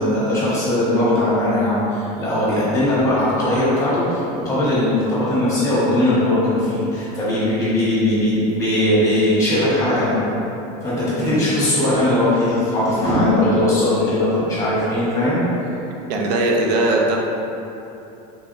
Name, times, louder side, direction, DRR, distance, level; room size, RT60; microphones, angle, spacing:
voice 1, 0.0-10.3 10.8-15.7, left 1 dB, 15° left, -10 dB, 1.3 m, -19 dB
voice 2, 16.1-17.2, right 2 dB, 90° right, 0 dB, 0.5 m, -19 dB
3.4 x 3.4 x 2.6 m, 2.9 s
supercardioid pair, 145°, 20 cm